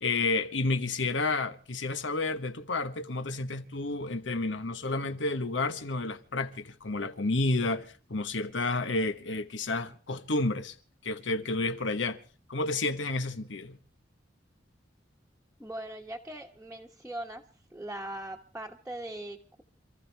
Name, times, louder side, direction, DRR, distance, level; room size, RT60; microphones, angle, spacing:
voice 1, 0.0-10.7 11.0-12.2 12.5-13.8, left 2 dB, 75° left, 1.2 m, -30 dB
voice 2, 15.6-17.4 17.7-19.6, right 1 dB, 5° right, 1.3 m, -40 dB
28.0 x 14.0 x 3.4 m
head